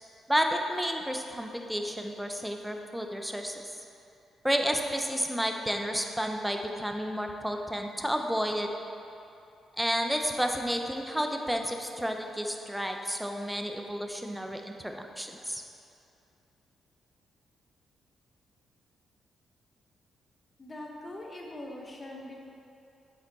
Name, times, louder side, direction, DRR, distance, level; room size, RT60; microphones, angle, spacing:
voice 1, 0.3-3.8 4.4-8.7 9.8-15.6, equal, ahead, 3 dB, 0.6 m, -31 dB
voice 2, 20.6-22.4, left 1 dB, 25° left, -1 dB, 0.8 m, -42 dB
8.1 x 5.3 x 4.0 m, 2.7 s
cardioid pair, 100°, 0 cm